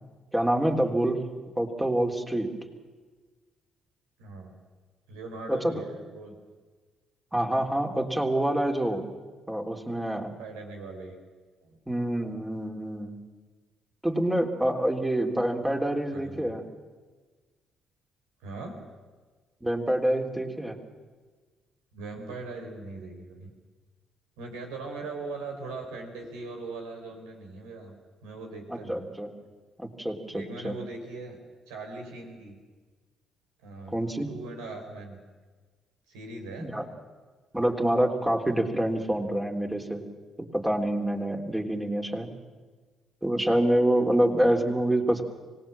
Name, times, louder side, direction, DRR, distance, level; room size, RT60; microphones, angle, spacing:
voice 1, 0.3-1.3 1.6-2.5 5.5-5.7 7.3-9.0 9.5-10.3 11.9-13.2 14.0-16.6 19.6-20.8 28.7-29.3 29.8-30.8 33.9-34.3 36.6-36.8 37.5-40.0 40.4-42.3 43.2-45.2, right 1 dB, 10° right, 3 dB, 3.5 m, -26 dB
voice 2, 4.2-4.5 5.1-6.4 10.4-11.2 11.6-11.8 16.1-16.6 18.4-18.8 21.9-23.5 24.4-27.9 28.2-29.1 30.3-31.4 31.7-32.6 33.6-34.0 34.3-35.2 36.1-36.7 44.1-44.2, right 3 dB, 80° right, 3 dB, 4.3 m, -40 dB
25.5 x 18.5 x 7.5 m, 1.4 s
hypercardioid pair, 45°, 0 cm